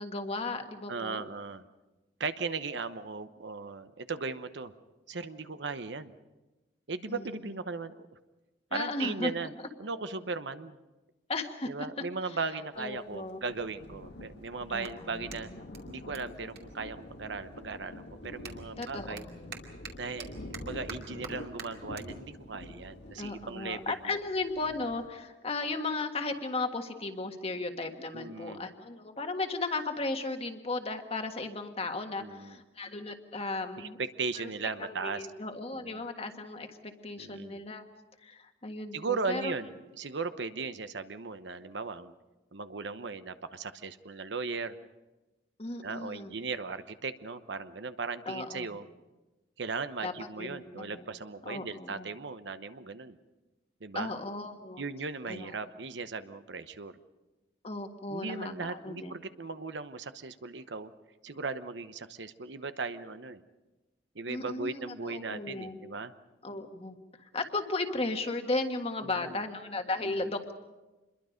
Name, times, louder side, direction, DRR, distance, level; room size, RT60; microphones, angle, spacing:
voice 1, 0.0-1.2 7.1-7.3 8.7-9.3 11.3-11.7 12.8-13.4 14.7-15.6 18.8-19.7 23.2-34.0 34.4-34.5 34.8-37.8 38.2-39.5 45.6-46.3 48.2-48.7 50.0-50.1 50.4-51.1 51.4-52.1 53.9-54.8 55.3-55.5 57.6-59.1 64.3-65.8 66.4-70.5, left 3 dB, 35° left, 5 dB, 1.6 m, -35 dB
voice 2, 0.9-1.6 2.2-4.7 5.1-6.1 6.9-8.1 8.7-9.5 9.8-10.8 11.6-15.5 15.9-19.2 20.0-24.2 28.1-28.7 32.2-32.6 33.8-35.3 35.7-36.0 37.2-37.6 38.9-42.1 42.5-44.8 45.8-48.9 49.6-53.2 53.8-54.1 54.8-57.0 58.1-60.9 61.2-63.4 64.1-66.1 69.0-69.4 70.0-70.3, right 4 dB, 80° right, 11 dB, 1.0 m, -37 dB
Thunder, 12.7-25.1, left 1 dB, 70° left, 1.9 m, -47 dB
Clapping, 14.8-17.5 17.8-24.5, right 6 dB, 60° right, 2.4 m, -50 dB
26.5 x 22.0 x 5.2 m, 1.1 s
head